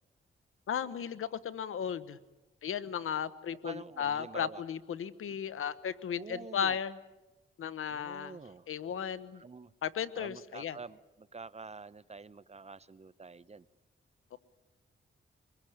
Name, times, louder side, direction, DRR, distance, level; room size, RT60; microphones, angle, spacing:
voice 1, 0.7-2.2 2.6-7.0 7.6-8.4 8.7-9.4 9.8-10.8 14.3-14.4, left 8 dB, 85° left, 14 dB, 1.1 m, -35 dB
voice 2, 3.6-4.6 6.2-6.8 7.9-9.0 9.3-9.7 10.1-13.7, right 4 dB, 30° right, 17 dB, 0.8 m, -47 dB
25.0 x 21.5 x 9.3 m, 1.1 s
cardioid pair, 70°, 21 cm